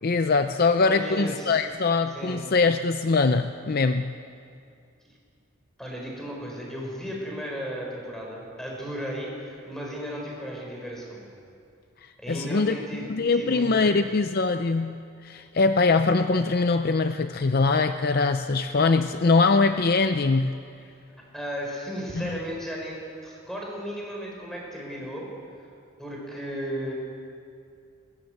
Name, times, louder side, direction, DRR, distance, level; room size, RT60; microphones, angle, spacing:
voice 1, 0.0-4.1 12.3-20.6 22.2-22.4, left 3 dB, 45° left, 9 dB, 0.5 m, -23 dB
voice 2, 0.9-1.6 2.1-2.4 5.8-11.3 12.2-14.0 20.9-21.0 21.3-25.3 25.6-25.7 26.0-26.9, equal, ahead, -2 dB, 5.4 m, -35 dB
21.5 x 18.5 x 8.0 m, 2.4 s
head